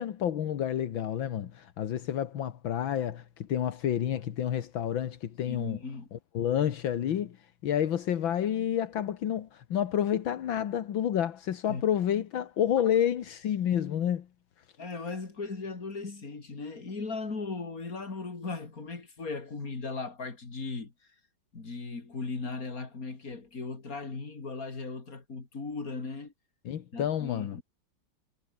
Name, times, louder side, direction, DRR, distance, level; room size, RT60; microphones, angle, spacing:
voice 1, 0.0-5.8 6.1-7.4 7.6-14.3 26.7-27.6, left 10 dB, 80° left, 2.0 m, -29 dB
voice 2, 5.5-6.1 11.7-11.8 14.8-20.9 21.5-26.3 26.9-27.6, left 4 dB, 45° left, 3.8 m, -37 dB
omnidirectional pair, 2.1 m